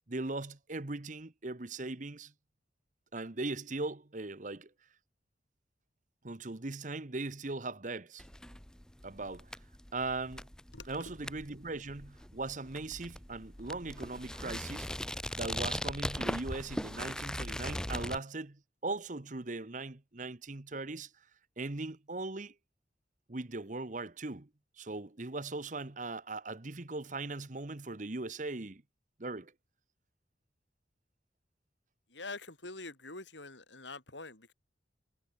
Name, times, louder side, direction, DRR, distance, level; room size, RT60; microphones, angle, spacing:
voice 1, 0.1-2.3 3.1-4.7 6.2-8.2 9.0-9.5 9.9-10.5 10.9-14.9 15.3-21.1 21.6-22.5 23.3-24.5 24.8-28.8 29.2-29.5, right 3 dB, 45° right, 1.1 m, -39 dB
sound 1, 8.2-18.2, left 1 dB, 5° left, 0.6 m, -40 dB
voice 2, 32.1-34.5, left 3 dB, 80° left, 7.3 m, -45 dB
head